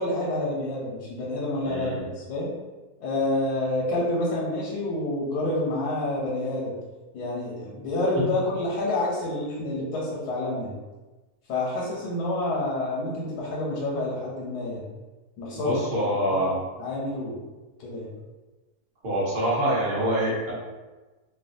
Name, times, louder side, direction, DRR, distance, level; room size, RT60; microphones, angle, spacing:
voice 1, 0.0-1.9 2.3-2.5 3.0-6.7 7.1-10.7 11.5-14.8 15.4-15.7 16.8-17.4 17.8-18.1, left 2 dB, 85° left, -5 dB, 1.4 m, -28 dB
voice 2, 1.6-2.1 8.1-8.4 15.5-16.6 19.0-20.5, right 1 dB, 40° right, -7 dB, 1.0 m, -26 dB
3.1 x 2.3 x 2.6 m, 1.2 s
omnidirectional pair, 1.6 m